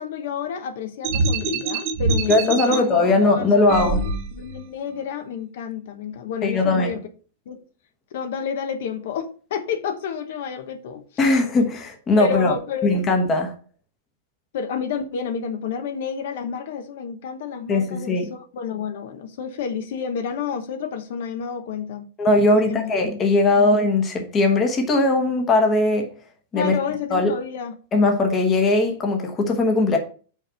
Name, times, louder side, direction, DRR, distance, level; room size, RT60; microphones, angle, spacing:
voice 1, 0.0-7.0 7.5-7.6 8.1-11.1 12.2-13.0 14.5-22.1 22.5-22.9 23.5-23.7 26.5-27.7, left 7 dB, 55° left, 1.0 m, -30 dB
sound 1, 1.0-2.8 3.7-4.6, right 3 dB, 35° right, 0.8 m, -24 dB
voice 2, 2.3-4.0 6.4-7.0 11.2-12.5 12.8-13.5 17.7-18.3 22.2-26.1 26.5-26.8 27.1-27.3 27.9-30.0, left 2 dB, 15° left, 1.1 m, -19 dB
5.5 x 5.1 x 6.2 m
supercardioid pair, 175°, 0 cm